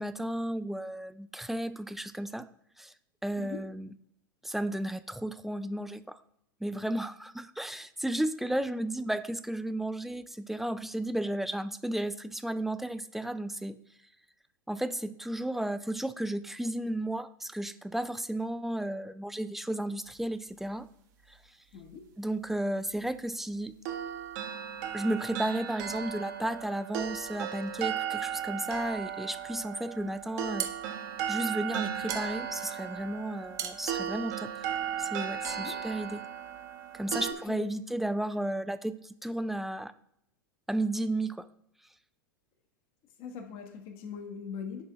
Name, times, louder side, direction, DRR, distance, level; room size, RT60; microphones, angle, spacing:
voice 1, 0.0-2.5 2.8-2.9 3.2-3.9 4.4-6.2 6.6-13.8 14.7-20.9 21.3-21.4 22.2-23.7 24.9-30.7 31.3-34.7 35.0-36.2 36.9-39.9 40.7-41.5, right 1 dB, ahead, 13 dB, 0.3 m, -33 dB
voice 2, 21.7-22.0 35.5-35.8 37.1-37.7 43.2-44.8, left 6 dB, 45° left, 4 dB, 1.3 m, -41 dB
sound 1, 23.9-37.3, right 9 dB, 50° right, 1.1 m, -36 dB
sound 2, 30.2-35.2, right 9 dB, 30° right, 0.6 m, -41 dB
9.9 x 3.7 x 3.5 m, 0.74 s
figure-of-eight pair, 90°, 11 cm